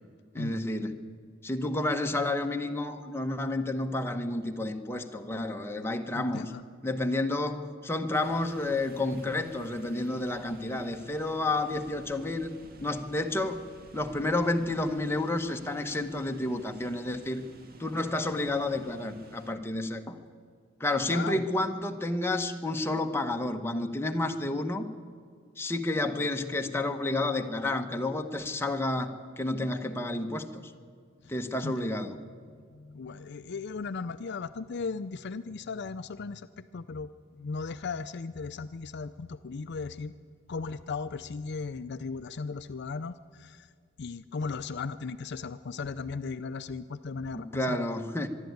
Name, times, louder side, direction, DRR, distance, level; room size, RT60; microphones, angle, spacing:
voice 1, 0.3-1.0 1.4-6.5 6.8-12.5 12.8-13.6 13.9-17.5 17.8-20.2 20.8-24.9 25.6-29.1 29.4-30.6 31.3-32.2 47.3-48.3, left 2 dB, 10° left, 4 dB, 1.1 m, -30 dB
voice 2, 6.1-6.6 21.0-21.4 31.2-31.4 31.6-31.9 32.5-36.5 36.7-37.1 37.4-40.1 40.5-43.7 44.0-47.9, left 4 dB, 55° left, 12 dB, 0.5 m, -37 dB
sound 1, 8.1-19.5, right 1 dB, 50° right, 1.7 m, -52 dB
24.0 x 11.5 x 9.4 m, 2.1 s
head